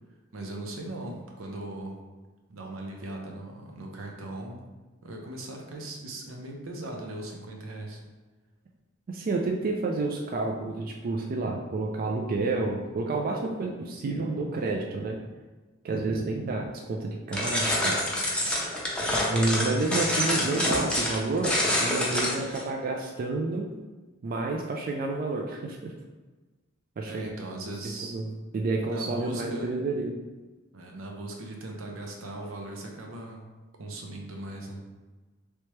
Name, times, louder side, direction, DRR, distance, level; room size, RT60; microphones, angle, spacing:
voice 1, 0.3-2.0 2.5-4.7 5.0-8.0 27.0-28.2 28.9-29.7 30.7-33.5 33.8-34.8, right 1 dB, 90° right, 1 dB, 0.7 m, -38 dB
voice 2, 9.1-15.2 15.8-18.0 19.3-23.7 24.2-25.9 27.0-27.3 27.8-30.1, right 3 dB, 45° right, 1 dB, 0.3 m, -30 dB
sound 1, 17.3-22.6, left 1 dB, 5° left, 0.6 m, -27 dB
3.3 x 2.9 x 3.1 m, 1.2 s
head